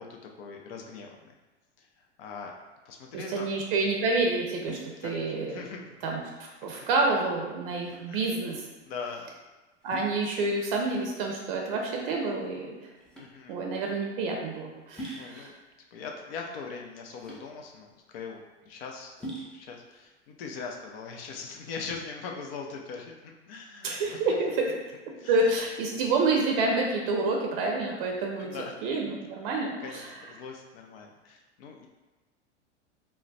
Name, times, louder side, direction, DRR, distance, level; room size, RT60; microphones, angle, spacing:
voice 1, 0.0-1.3 1.8-2.5 2.9-3.5 5.0-5.9 8.1-8.2 8.8-9.3 13.2-13.6 15.0-15.5 15.9-19.1 19.5-24.4 25.1-25.5 28.4-28.8 29.8-31.9, left 5 dB, 55° left, 1 dB, 0.5 m, -41 dB
sound 1, 3.1-21.6, right 1 dB, ahead, 0.4 m, -47 dB
voice 2, 3.1-5.6 6.0-8.6 9.8-12.7 13.5-15.5 23.8-24.6 25.3-28.5 28.8-30.0, right 3 dB, 50° right, 0 dB, 0.6 m, -28 dB
2.3 x 2.1 x 3.9 m, 1.2 s
hypercardioid pair, 100°, 36 cm